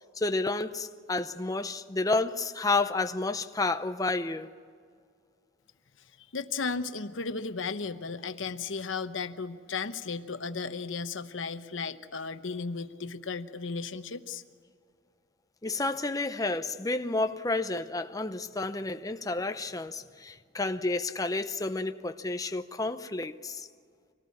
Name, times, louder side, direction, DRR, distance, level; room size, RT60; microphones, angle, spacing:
voice 1, 0.2-4.5 15.6-23.6, left 3 dB, 20° left, 0.7 m, -30 dB
voice 2, 6.0-14.4, left 4 dB, 90° left, 1.0 m, -35 dB
25.5 x 19.0 x 8.5 m
head